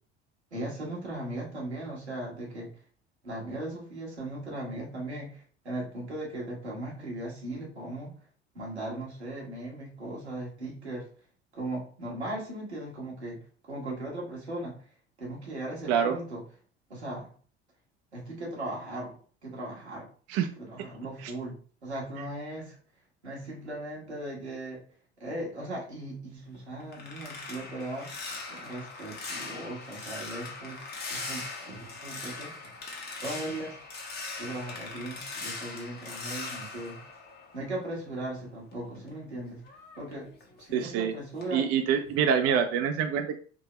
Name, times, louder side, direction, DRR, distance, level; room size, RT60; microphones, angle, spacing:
voice 1, 0.5-2.7 3.2-8.2 8.5-11.1 11.5-13.4 13.7-14.8 15.2-16.4 16.9-17.3 18.1-20.1 20.6-22.8 23.2-24.8 25.2-28.1 28.5-32.5 33.2-33.8 34.4-37.0 37.5-39.6 40.0-40.3 40.6-41.6, right 1 dB, 90° right, -4 dB, 1.3 m, -38 dB
sound 1, 26.4-38.0 38.4-41.0 41.4-41.7 42.1-42.3, left 3 dB, 30° left, 1.1 m, -41 dB
voice 2, 40.7-41.1 41.5-43.3, right 7 dB, 45° right, 6 dB, 0.5 m, -26 dB
3.7 x 2.8 x 3.0 m, 0.43 s
figure-of-eight pair, 65°, 32 cm